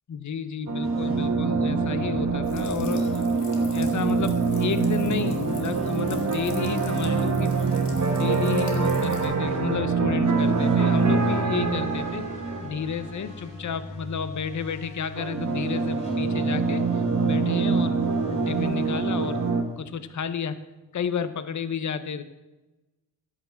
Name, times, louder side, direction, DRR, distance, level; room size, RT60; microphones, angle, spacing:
voice 1, 0.1-3.3 3.7-7.6 8.1-12.2 12.6-16.8 17.2-19.4 19.8-20.6 20.9-22.2, left 7 dB, 45° left, 12 dB, 0.7 m, -31 dB
sound 1, 0.7-13.2 15.1-19.6, right 4 dB, 40° right, 1.3 m, -25 dB
sound 2, 0.8-20.4, left 1 dB, 15° left, 3.2 m, -42 dB
sound 3, 2.4-9.2, left 4 dB, 75° left, 2.1 m, -46 dB
11.0 x 4.9 x 7.6 m, 1.1 s
cardioid pair, 55°, 42 cm